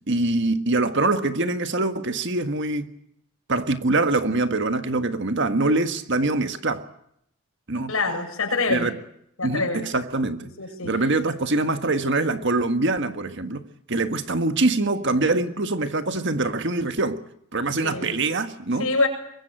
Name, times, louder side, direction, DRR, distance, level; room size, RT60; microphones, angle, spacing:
voice 1, 0.1-2.9 3.5-6.8 7.7-7.9 8.7-8.9 9.4-10.5 10.8-17.2 17.5-18.9, right 2 dB, 55° right, 1.6 m, -24 dB
voice 2, 7.9-8.9 9.4-9.9 10.6-10.9 17.8-18.2 18.8-19.1, left 3 dB, 75° left, 7.3 m, -25 dB
24.0 x 22.0 x 9.0 m
head